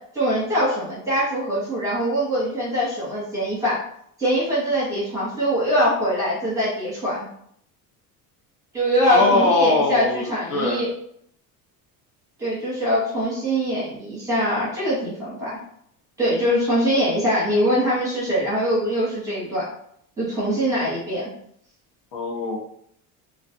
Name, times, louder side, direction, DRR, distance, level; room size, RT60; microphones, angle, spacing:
voice 1, 0.1-3.8 4.2-7.3 8.7-10.9 12.4-15.5 16.2-19.7 20.2-21.3, equal, 10° right, -8 dB, 0.9 m, -23 dB
voice 2, 9.1-10.8 22.1-22.6, left 2 dB, 70° left, -2 dB, 0.9 m, -21 dB
2.4 x 2.3 x 2.5 m, 0.68 s
cardioid pair, 165°, 38 cm